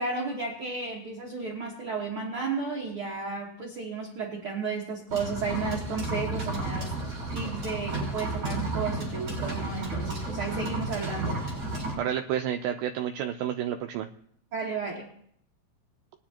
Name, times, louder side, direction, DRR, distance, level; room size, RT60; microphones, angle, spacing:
voice 1, 0.0-6.9 7.3-11.4 14.5-15.1, right 4 dB, 60° right, -2 dB, 1.4 m, -33 dB
sound 1, 5.1-11.9, right 2 dB, 25° right, 5.2 m, -32 dB
voice 2, 12.0-14.1, right 10 dB, 90° right, 5 dB, 2.0 m, -30 dB
21.0 x 9.8 x 2.9 m, 0.68 s
omnidirectional pair, 4.8 m